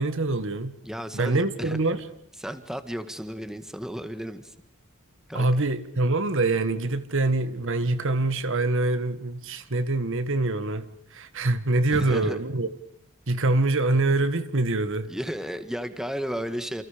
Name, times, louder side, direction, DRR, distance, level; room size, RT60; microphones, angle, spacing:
voice 1, 0.0-0.8 1.1-2.0 5.3-10.9 11.1-12.7 13.3-15.1, right 2 dB, 60° right, 1.6 m, -25 dB
voice 2, 0.8-1.8 2.4-4.5 5.3-5.5 11.9-12.4 15.1-16.8, equal, ahead, 1.7 m, -33 dB
30.0 x 28.0 x 5.2 m
head